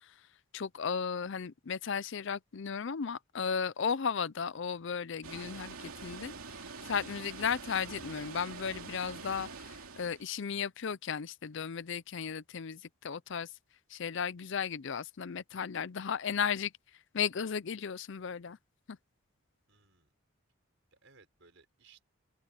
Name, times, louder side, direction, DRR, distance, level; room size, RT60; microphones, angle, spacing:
voice 1, 0.5-6.3 6.8-13.5 13.9-16.7 17.1-18.6 18.9-19.0, left 6 dB, 55° left, 0.5 m, -35 dB
Water, 5.2-10.3, right 4 dB, 85° right, 2.7 m, -45 dB
voice 2, 19.7-20.1 20.9-22.0, right 4 dB, 60° right, 6.2 m, -62 dB
open air
head